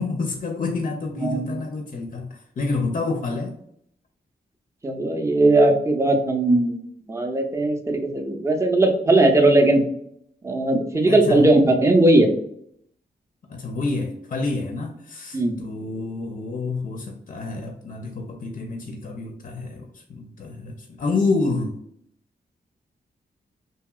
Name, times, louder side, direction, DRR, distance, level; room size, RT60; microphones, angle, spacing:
voice 1, 0.0-3.6 11.1-11.5 13.5-21.8, left 3 dB, 50° left, 3 dB, 0.4 m, -28 dB
voice 2, 1.2-1.5 4.8-6.8 7.1-9.8 10.4-12.3 15.3-15.6, right 2 dB, 15° right, 3 dB, 0.5 m, -18 dB
2.8 x 2.7 x 2.3 m, 0.71 s
cardioid pair, 80°, 18 cm